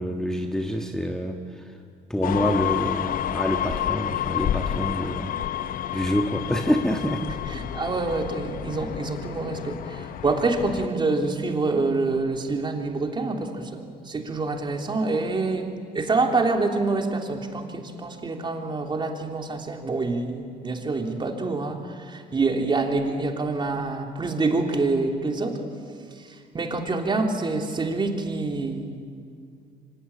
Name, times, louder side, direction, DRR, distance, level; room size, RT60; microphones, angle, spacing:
voice 1, 0.0-1.4 2.1-5.3 5.9-7.4, equal, 5° left, 3 dB, 1.6 m, -26 dB
sound 1, 2.2-10.9, left 11 dB, 55° left, 0.8 m, -30 dB
voice 2, 7.5-25.6 26.2-29.1, right 3 dB, 30° right, 3 dB, 3.2 m, -26 dB
26.0 x 25.5 x 8.7 m, 2.2 s
cardioid pair, 110°, 17 cm